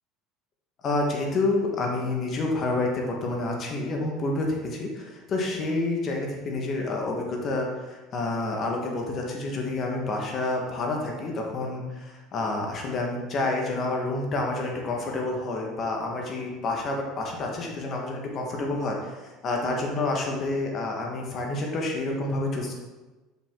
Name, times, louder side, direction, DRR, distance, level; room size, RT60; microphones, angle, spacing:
voice 1, 0.8-19.2 19.4-22.7, left 2 dB, 40° left, 0 dB, 1.6 m, -28 dB
6.8 x 5.9 x 3.9 m, 1.2 s
supercardioid pair, 125°, 0 cm